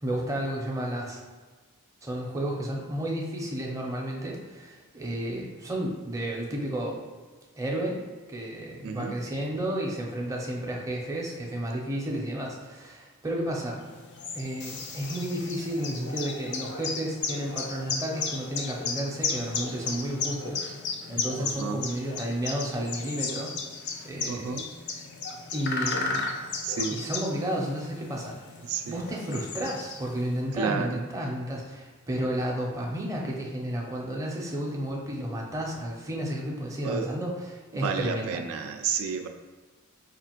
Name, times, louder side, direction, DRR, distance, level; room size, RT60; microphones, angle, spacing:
voice 1, 0.0-1.2 2.0-7.0 7.6-8.0 8.3-13.8 14.3-20.6 21.1-23.5 24.0-24.5 25.5-26.3 26.9-28.4 28.8-38.4, right 1 dB, 15° right, -2 dB, 0.5 m, -32 dB
sound 1, 13.8-30.4, left 4 dB, 50° left, 0.4 m, -35 dB
sound 2, 14.6-16.9, left 4 dB, 85° left, 0.7 m, -47 dB
voice 2, 21.4-21.8 24.3-24.7 26.6-27.0 28.6-29.0 30.6-31.0 36.8-37.2 37.7-39.3, right 6 dB, 70° right, 5 dB, 0.3 m, -31 dB
4.9 x 2.4 x 2.9 m, 1.4 s
head